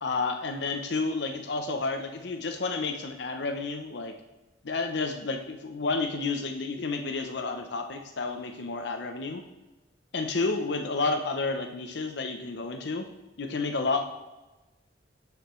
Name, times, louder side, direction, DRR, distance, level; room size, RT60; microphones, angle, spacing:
voice 1, 0.0-4.1 4.6-9.4 10.1-13.1 13.4-14.0, left 3 dB, 65° left, 5 dB, 0.6 m, -30 dB
12.5 x 5.0 x 3.1 m, 1.1 s
head